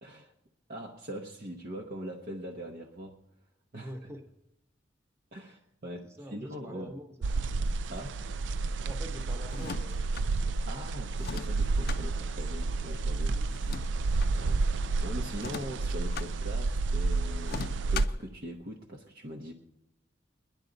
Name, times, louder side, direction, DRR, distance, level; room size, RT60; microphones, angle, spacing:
voice 1, 0.0-0.3 0.7-3.2 3.7-4.1 5.3-6.9 7.9-8.2 10.7-13.4 14.4-19.5, equal, 50° right, 0 dB, 0.8 m, -42 dB
voice 2, 3.7-4.3 6.0-7.5 8.8-10.5 13.3-13.5, equal, 15° right, 6 dB, 1.0 m, -46 dB
sound 1, 7.2-18.1, right 3 dB, 75° right, 0.4 m, -30 dB
sound 2, 9.5-10.3 11.2-12.0 13.5-14.3 15.4-16.3 17.4-18.3, left 5 dB, 55° left, 0.4 m, -39 dB
20.5 x 10.5 x 3.9 m, 0.87 s
head